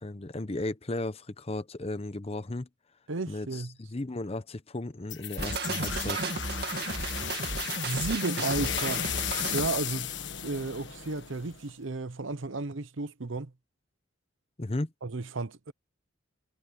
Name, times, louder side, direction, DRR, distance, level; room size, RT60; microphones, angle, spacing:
voice 1, 0.0-2.7 3.3-6.3 14.6-14.9, left 2 dB, 30° left, 0.8 m, -35 dB
voice 2, 3.1-3.7 7.8-9.1 9.5-10.1 10.4-13.5 15.0-15.7, right 3 dB, 75° right, 0.9 m, -33 dB
sound 1, 5.1-11.7, left 10 dB, 60° left, 1.5 m, -35 dB
sound 2, 5.4-9.7, right 3 dB, 55° right, 2.1 m, -34 dB
head